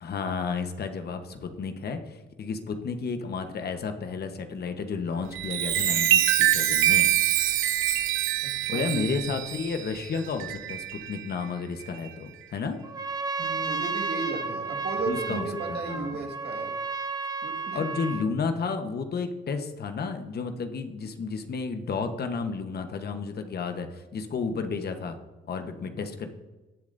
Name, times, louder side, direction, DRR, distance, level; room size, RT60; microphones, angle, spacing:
voice 1, 0.0-7.1 8.7-12.8 15.1-16.2 17.7-25.2 25.5-26.3, left 5 dB, 55° left, 7 dB, 1.1 m, -32 dB
Chime, 5.2-11.2 11.8-12.1, right 12 dB, 85° right, 0.7 m, -25 dB
voice 2, 8.4-9.2 13.4-16.7 17.4-17.8, right 3 dB, 55° right, 3 dB, 1.8 m, -34 dB
Trumpet, 12.8-18.3, right 4 dB, 20° right, 1.0 m, -32 dB
19.5 x 7.2 x 2.6 m, 1.1 s
cardioid pair, 90°, 20 cm